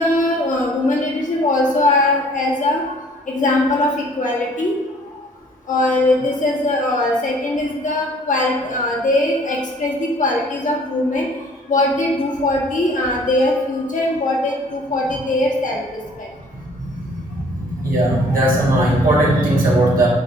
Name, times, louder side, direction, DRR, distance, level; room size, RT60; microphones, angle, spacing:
voice 1, 0.0-3.0 3.3-4.7 5.7-11.3 11.7-16.3, left 2 dB, 65° left, -2 dB, 1.2 m, -20 dB
voice 2, 16.5-20.1, right 1 dB, 85° right, -5 dB, 1.5 m, -18 dB
7.5 x 2.6 x 2.7 m, 1.3 s
cardioid pair, 55°, 14 cm